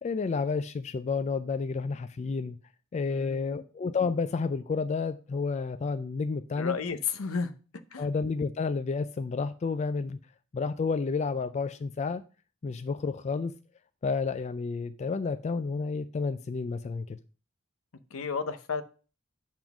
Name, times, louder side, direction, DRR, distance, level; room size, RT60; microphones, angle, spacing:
voice 1, 0.0-2.6 2.9-6.8 8.0-10.2 10.5-12.2 12.6-13.5 14.0-17.2, left 4 dB, 30° left, 0.3 m, -30 dB
voice 2, 3.1-3.6 6.6-7.5 7.9-8.1 18.1-18.8, left 5 dB, 75° left, 0.7 m, -32 dB
7.0 x 3.8 x 5.9 m
head